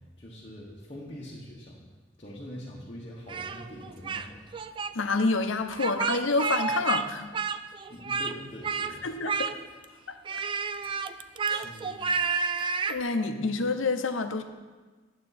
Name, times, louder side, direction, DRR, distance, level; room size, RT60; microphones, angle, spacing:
voice 1, 0.2-1.9 2.2-4.4 7.9-9.1 11.5-12.0, equal, 30° left, -6 dB, 1.4 m, -43 dB
Speech, 3.3-4.3 4.5-4.9 5.7-7.0 7.3-8.3 8.6-8.9 9.2-9.8 10.2-13.0, right 5 dB, 25° right, 0.3 m, -30 dB
voice 2, 4.9-7.3 9.0-9.5 10.1-10.4 11.5-11.7 12.9-14.4, left 3 dB, 80° left, 8 dB, 0.8 m, -28 dB
11.5 x 8.0 x 4.2 m, 1.3 s
head